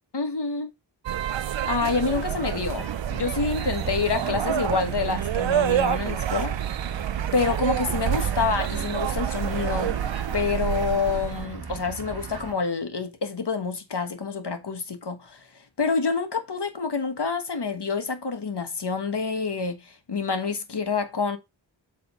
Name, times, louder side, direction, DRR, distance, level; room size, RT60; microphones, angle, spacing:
voice 1, 0.1-0.7 1.6-6.5 7.3-10.0 10.3-15.4 15.8-21.4, left 4 dB, 60° left, 1.4 m, -27 dB
sound 1, 1.1-11.4, right 11 dB, 75° right, 0.5 m, -28 dB
sound 2, 2.1-12.5, right 5 dB, 55° right, 1.3 m, -37 dB
7.7 x 3.5 x 5.4 m
wide cardioid pair, 75°, 46 cm